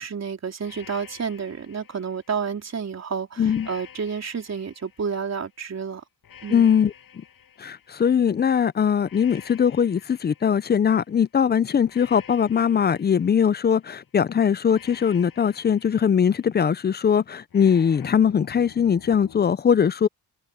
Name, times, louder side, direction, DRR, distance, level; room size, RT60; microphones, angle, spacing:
voice 1, 0.0-6.0 6.4-6.7, right 6 dB, 45° right, 3.6 m, -30 dB
sound 1, 0.6-2.8 3.4-5.6 6.2-8.4 9.0-11.2 11.9-14.0 14.7-16.8 17.5-19.5, left 8 dB, 60° left, 6.7 m, -49 dB
voice 2, 3.4-3.7 6.5-6.9 7.6-20.1, left 7 dB, 25° left, 0.4 m, -21 dB
wide cardioid pair, 145°, 38 cm